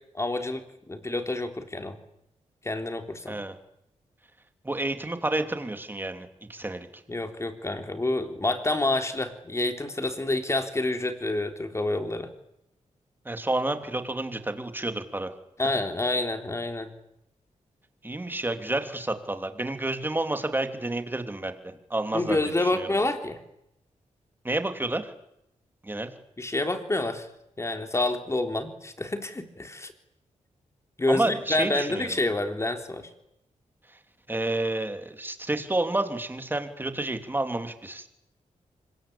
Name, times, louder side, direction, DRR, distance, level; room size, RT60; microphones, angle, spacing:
voice 1, 0.1-2.0 2.6-3.4 7.1-12.3 15.6-16.9 22.1-23.4 26.4-27.3 27.6-29.9 31.0-33.1, left 2 dB, 20° left, 7 dB, 3.7 m, -28 dB
voice 2, 4.6-7.0 13.2-15.3 18.0-21.6 21.9-22.9 24.4-25.1 25.8-26.1 31.1-32.1 34.3-38.1, right 2 dB, 15° right, 7 dB, 3.2 m, -30 dB
25.5 x 23.0 x 8.8 m, 0.78 s
wide cardioid pair, 115°, 13 cm